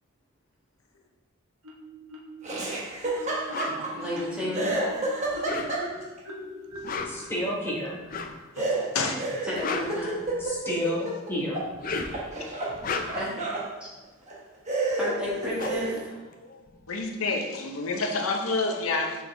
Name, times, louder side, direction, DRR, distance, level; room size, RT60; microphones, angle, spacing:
Marimba xylophone, 1.6-2.6 3.0-8.5, right 1 dB, 70° right, 0.9 m, -43 dB
Laughter, 2.4-4.2 4.5-6.2 8.6-11.7 12.0-13.7 14.3-14.4 14.7-16.0, right 2 dB, 35° right, 1.0 m, -30 dB
sound 1, 3.5-3.8 5.3-6.0 6.7-7.3 8.1-8.4 9.4-10.6 11.6-12.3 12.7-13.4 14.9-15.0 15.2-16.9, left 4 dB, 40° left, 0.4 m, -34 dB
voice 1, 3.6-4.7 9.4-10.2 12.9-13.3 15.0-15.9, left 1 dB, 5° right, -8 dB, 1.9 m, -32 dB
voice 2, 7.1-8.0 10.4-11.6 12.9-13.0, equal, 10° left, -5 dB, 1.2 m, -30 dB
voice 3, 8.6-9.2 16.9-19.2, left 3 dB, 85° left, 3 dB, 0.7 m, -28 dB
6.2 x 4.6 x 3.4 m, 1.2 s
head